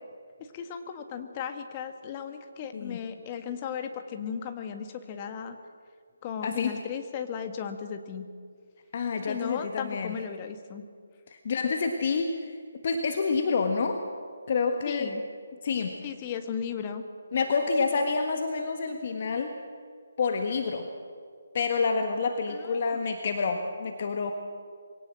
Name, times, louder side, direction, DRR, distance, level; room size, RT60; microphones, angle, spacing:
voice 1, 0.4-5.6 6.2-8.3 9.3-10.8 14.8-15.2 16.0-17.0 22.5-23.0, left 7 dB, 25° left, 7 dB, 1.6 m, -36 dB
voice 2, 6.4-6.7 8.9-10.1 11.4-12.5 12.8-14.0 14.5-15.1 15.6-16.0 17.3-19.5 20.2-20.9 21.5-24.3, left 4 dB, 45° left, 5 dB, 1.6 m, -28 dB
23.0 x 17.5 x 7.6 m, 2.1 s
figure-of-eight pair, 150°, 0 cm